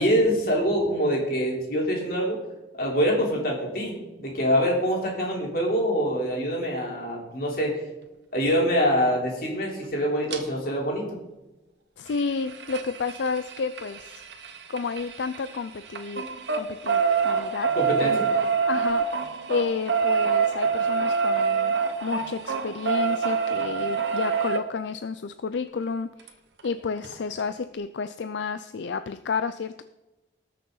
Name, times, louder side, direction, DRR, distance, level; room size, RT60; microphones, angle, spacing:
voice 1, 0.0-2.4 2.8-7.7 8.3-11.2 17.8-18.3, equal, 50° left, -2 dB, 3.4 m, -25 dB
sound 1, 10.3-10.4 12.1-15.6 15.9-24.6 26.3-26.4 26.6-26.7 27.0-27.1, right 5 dB, 70° right, 1.2 m, -26 dB
voice 2, 12.0-14.2 14.7-16.3 16.5-17.7 18.0-18.2 18.7-21.7 22.0-26.4 26.6-29.8, left 5 dB, 75° left, 11 dB, 0.4 m, -31 dB
19.0 x 6.6 x 3.9 m, 1.0 s
head